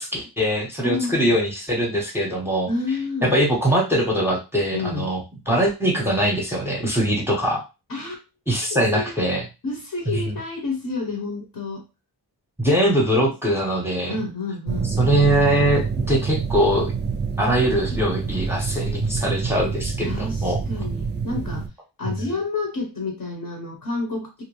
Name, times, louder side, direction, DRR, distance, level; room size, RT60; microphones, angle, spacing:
voice 1, 0.0-2.7 3.2-5.2 5.5-7.6 8.5-9.4 10.1-10.2 12.6-14.2 15.0-16.9 17.4-20.6 22.0-22.1, right 1 dB, 5° right, -1 dB, 0.7 m, -22 dB
voice 2, 0.8-1.3 2.7-3.4 4.7-5.1 7.9-8.2 8.9-9.2 9.6-11.8 14.1-14.9 20.0-21.7 22.0-24.4, left 3 dB, 55° left, 0 dB, 0.9 m, -29 dB
sound 1, 14.7-21.7, right 5 dB, 30° right, 0.3 m, -27 dB
2.6 x 2.1 x 3.0 m, 0.28 s
wide cardioid pair, 105°, 41 cm